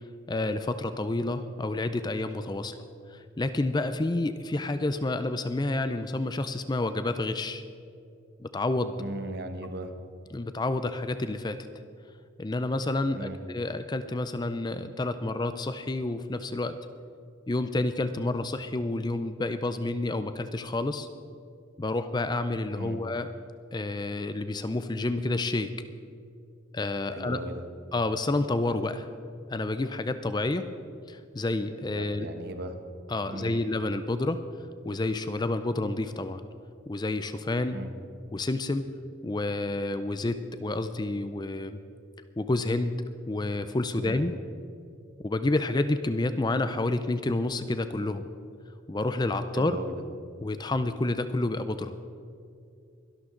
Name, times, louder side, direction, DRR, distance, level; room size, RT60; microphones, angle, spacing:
voice 1, 0.3-2.8 3.1-7.6 8.4-9.0 10.3-11.6 12.4-16.8 17.5-21.1 21.8-23.3 23.7-25.7 26.7-27.4 27.9-29.1 29.5-30.6 31.1-32.3 33.1-34.4 34.9-36.4 36.9-37.8 38.3-38.9 39.2-41.8 42.4-43.0 43.3-44.3 45.2-48.2 48.9-49.8 50.4-51.9, left 2 dB, 20° left, 10 dB, 0.5 m, -29 dB
voice 2, 9.0-9.9 13.1-13.4 22.8-23.0 27.1-27.6 31.9-32.8 33.3-33.5 37.7-37.9 44.0-44.3 49.5-50.0, right 1 dB, 50° right, 7 dB, 1.2 m, -37 dB
23.0 x 12.0 x 3.9 m, 2.5 s
head